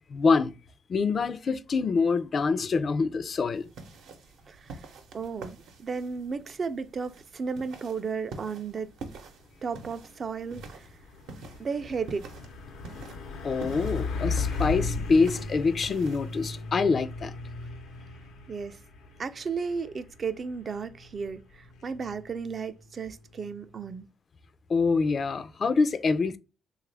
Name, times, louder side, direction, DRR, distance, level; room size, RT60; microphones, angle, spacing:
voice 1, 0.1-0.5 0.9-3.7 13.4-17.3 24.7-26.4, left 4 dB, 45° left, 0.4 m, -25 dB
sound 1, 3.5-16.6, right 3 dB, 80° right, 0.7 m, -47 dB
voice 2, 4.5-4.9 5.1-8.9 9.6-10.9 11.6-12.3 18.5-18.8 19.2-24.1, right 5 dB, 45° right, 0.4 m, -34 dB
Truck, 9.7-24.0, left 4 dB, 90° left, 0.7 m, -37 dB
3.3 x 2.4 x 3.2 m
cardioid pair, 90°, 0 cm